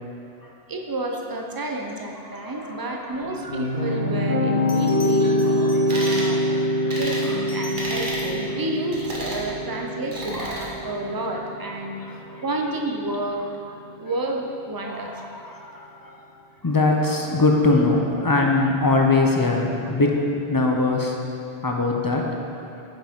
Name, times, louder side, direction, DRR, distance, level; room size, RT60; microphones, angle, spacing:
voice 1, 0.7-5.5 5.9-6.4 7.0-13.5 14.0-15.2, right 1 dB, 30° right, 1 dB, 0.5 m, -30 dB
voice 2, 2.3-3.2 3.8-4.0 5.2-7.4 7.9-8.0 8.5-8.6 10.3-11.2 12.0-12.5 13.4-13.5 14.1-14.2 14.8-16.2 16.6-20.2 20.5-21.2 21.6-22.2, left 3 dB, 25° left, 0 dB, 0.5 m, -24 dB
sound 1, 3.1-12.2, left 1 dB, 70° right, 1.9 m, -25 dB
Bell, 4.7-6.6 7.3-8.4 11.1-11.3, left 2 dB, 45° left, 1.2 m, -42 dB
sound 2, 5.9-6.3 6.9-7.2 7.8-8.3 8.9-9.4 10.1-10.7, right 1 dB, 50° right, 1.4 m, -32 dB
8.7 x 5.9 x 3.6 m, 2.6 s
omnidirectional pair, 1.1 m